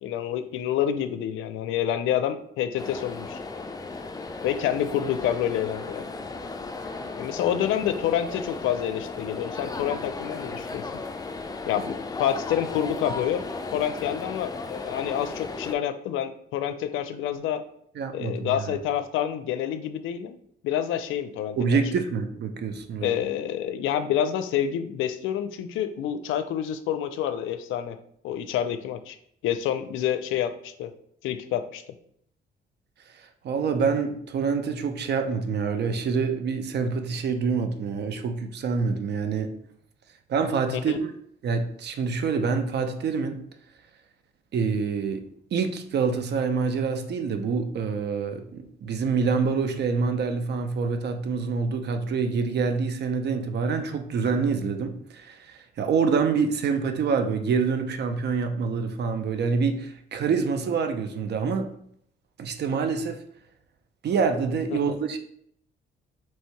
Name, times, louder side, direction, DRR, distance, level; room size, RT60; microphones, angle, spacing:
voice 1, 0.0-3.4 4.4-6.0 7.2-11.0 11.7-13.4 13.7-17.6 18.1-20.4 20.6-21.8 23.0-28.0 28.2-29.2 29.4-30.9 31.2-31.8 40.7-41.0 64.7-64.8, left 10 dB, 85° left, 10 dB, 0.4 m, -28 dB
sound 1, 2.8-15.7, left 3 dB, 20° left, 0.4 m, -35 dB
voice 2, 18.0-18.5 21.6-23.1 33.1-39.5 40.3-41.0 41.4-43.4 44.5-45.2 45.5-61.7 62.4-63.2 64.0-65.2, right 5 dB, 60° right, 7 dB, 0.6 m, -26 dB
3.1 x 2.7 x 4.5 m, 0.68 s
cardioid pair, 90°, 20 cm